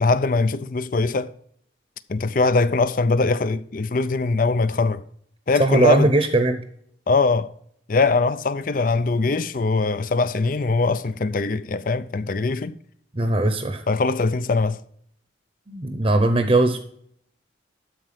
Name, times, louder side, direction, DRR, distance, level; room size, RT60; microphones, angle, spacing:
voice 1, 0.0-1.3 2.1-5.0 5.5-6.1 7.1-7.5 7.9-12.8 13.9-14.8, left 3 dB, 45° left, 0.5 m, -21 dB
voice 2, 5.6-6.6 13.1-13.8 15.7-16.8, right 2 dB, 30° right, 0.8 m, -19 dB
12.5 x 4.6 x 5.9 m
head